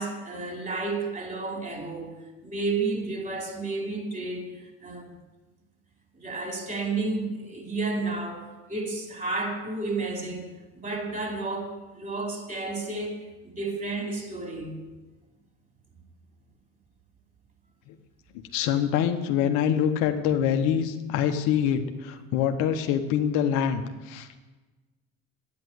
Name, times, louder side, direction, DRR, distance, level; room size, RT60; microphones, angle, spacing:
voice 1, 0.0-5.0 6.1-10.5 10.7-14.8, right 3 dB, 25° right, 4.4 m, -32 dB
voice 2, 18.5-24.4, left 9 dB, 80° left, 1.1 m, -25 dB
10.5 x 9.6 x 8.0 m
supercardioid pair, 75°, 31 cm